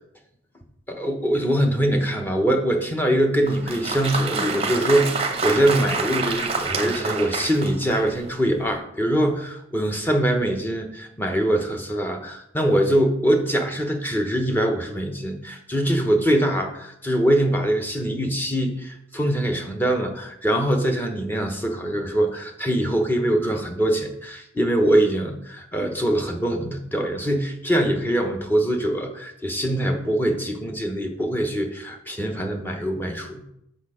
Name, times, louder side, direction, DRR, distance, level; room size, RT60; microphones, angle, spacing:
voice 1, 0.9-33.4, right 1 dB, 10° left, 3 dB, 1.0 m, -23 dB
Applause, 3.4-8.3, right 4 dB, 30° right, 0.7 m, -27 dB
6.5 x 6.2 x 4.9 m, 0.76 s
head